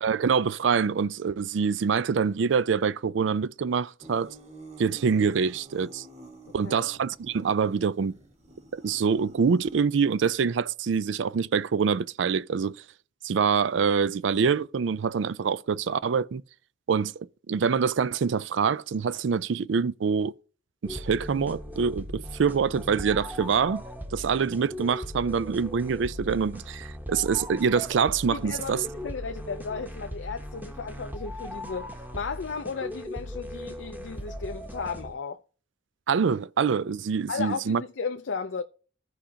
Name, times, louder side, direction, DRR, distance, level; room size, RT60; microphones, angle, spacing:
voice 1, 0.0-4.3 4.8-6.1 6.5-8.2 8.7-12.8 13.2-16.4 16.9-20.3 20.8-23.8 24.1-28.8 36.1-37.8, right 6 dB, 75° right, 0.4 m, -25 dB
sound 1, 4.0-9.8, right 2 dB, 35° right, 1.6 m, -49 dB
sound 2, 20.8-35.1, equal, 10° right, 1.0 m, -39 dB
voice 2, 28.3-35.4 37.3-38.6, left 5 dB, 75° left, 0.5 m, -35 dB
15.0 x 5.1 x 2.8 m
head